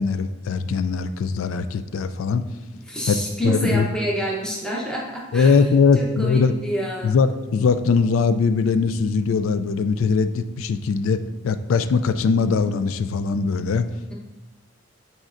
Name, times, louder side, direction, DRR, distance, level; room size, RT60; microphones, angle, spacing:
voice 1, 0.0-2.4 3.1-3.2 3.4-3.9 5.3-6.5 7.0-11.2 11.4-13.9, left 5 dB, 70° left, 11 dB, 0.3 m, -21 dB
voice 2, 2.9-5.6 5.9-7.1, equal, 5° left, -4 dB, 0.9 m, -27 dB
8.9 x 4.3 x 2.5 m, 1.1 s
head